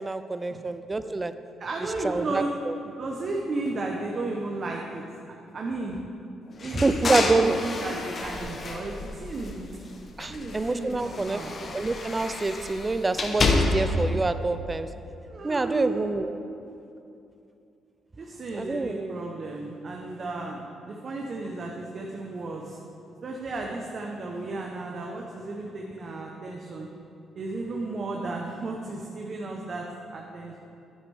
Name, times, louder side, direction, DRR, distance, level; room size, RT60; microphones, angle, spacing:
voice 1, 0.0-1.3 2.0-2.8 6.7-7.6 10.2-11.4 11.7-14.9 15.4-16.4 18.5-19.1, right 3 dB, 20° right, 11 dB, 0.4 m, -26 dB
voice 2, 1.6-2.5 3.0-5.0 5.5-6.0 6.6-9.7 10.3-11.5 15.3-16.0 18.2-22.8 23.2-26.9 27.3-29.9 30.1-30.6, right 2 dB, 45° right, 0 dB, 0.8 m, -34 dB
sound 1, 6.6-9.8 10.1-14.1, left 3 dB, 45° left, 1.0 m, -29 dB
9.6 x 9.5 x 3.5 m, 2.8 s
cardioid pair, 90°, 0 cm